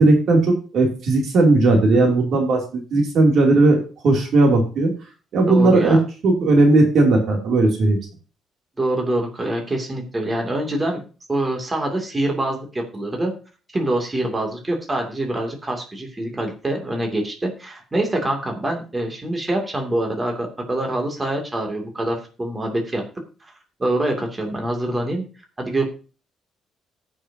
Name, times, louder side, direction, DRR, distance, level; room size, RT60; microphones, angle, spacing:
voice 1, 0.0-2.6 2.9-4.9 5.3-6.0 6.2-8.0, right 2 dB, 70° right, 1 dB, 2.9 m, -16 dB
voice 2, 5.5-6.0 8.8-11.0 11.3-13.3 13.7-23.0 23.4-23.5 23.8-25.2 25.6-25.9, right 1 dB, 20° right, 2 dB, 2.7 m, -25 dB
18.5 x 6.3 x 2.8 m, 0.35 s
cardioid pair, 90°, 0 cm